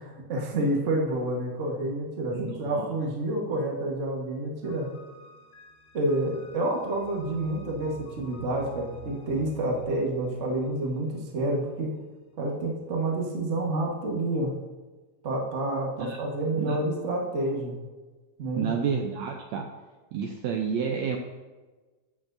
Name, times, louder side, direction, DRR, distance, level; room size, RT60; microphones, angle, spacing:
voice 1, 0.0-4.9 5.9-11.9 12.4-14.6 15.2-17.8 18.4-18.7, right 1 dB, 60° right, -1 dB, 0.7 m, -29 dB
voice 2, 2.3-2.9 16.0-16.2 16.5-16.8 18.6-19.7 20.1-21.2, right 7 dB, 80° right, 3 dB, 1.6 m, -30 dB
sound 1, 4.6-11.9, left 2 dB, 80° left, 2.6 m, -48 dB
15.0 x 6.3 x 2.7 m, 1.2 s
omnidirectional pair, 3.8 m